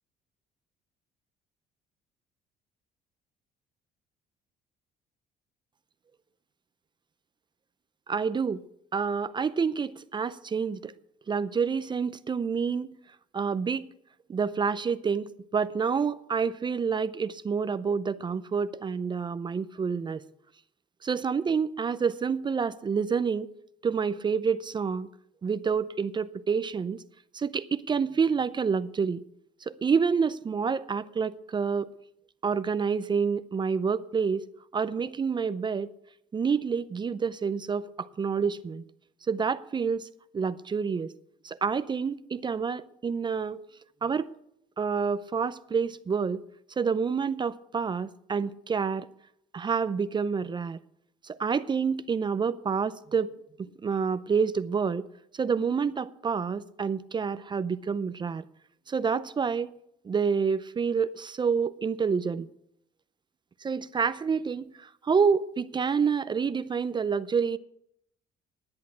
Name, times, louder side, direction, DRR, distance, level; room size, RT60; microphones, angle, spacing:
voice 1, 8.1-8.6 8.9-10.9 11.3-13.0 13.3-13.9 14.3-20.2 21.0-23.5 23.8-25.1 25.4-27.0 27.3-29.2 29.7-31.9 32.4-34.5 34.7-35.9 36.3-38.8 39.3-40.1 40.3-41.1 41.4-43.6 44.0-44.3 44.8-46.4 46.8-49.1 49.5-50.8 51.2-53.3 53.6-55.1 55.3-58.4 58.9-59.7 60.0-62.5 63.6-67.6, right 6 dB, 25° right, 0.5 m, -28 dB
10.5 x 8.2 x 9.6 m
cardioid pair, 110°, 17 cm